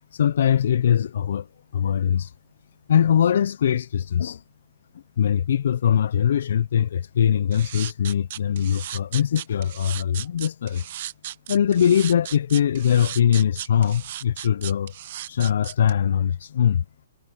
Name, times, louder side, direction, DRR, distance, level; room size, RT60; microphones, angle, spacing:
voice 1, 0.1-1.5 1.7-2.3 2.9-4.4 5.2-10.8 11.5-14.9 15.3-16.8, left 9 dB, 55° left, 0.3 m, -21 dB
sound 1, 7.5-15.9, right 12 dB, 40° right, 0.7 m, -36 dB
hypercardioid pair, 170°, 0 cm